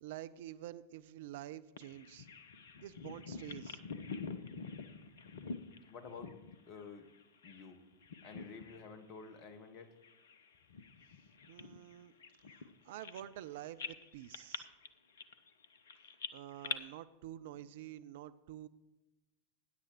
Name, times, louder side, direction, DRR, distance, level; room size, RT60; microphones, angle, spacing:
voice 1, 0.0-2.3 2.8-3.8 11.5-12.1 12.5-14.7 16.3-18.7, right 13 dB, 55° right, 14 dB, 0.5 m, -48 dB
Bird vocalization bird call bird song, 1.8-7.7 8.0-8.9 9.2-9.4 10.0-13.5 13.8-16.8, left 5 dB, 60° left, 0.8 m, -46 dB
voice 2, 5.9-6.3 6.7-7.1 7.4-7.8 8.2-9.9, left 5 dB, 40° left, 9 dB, 1.4 m, -51 dB
20.0 x 9.9 x 3.0 m, 1.1 s
figure-of-eight pair, 90°, 0 cm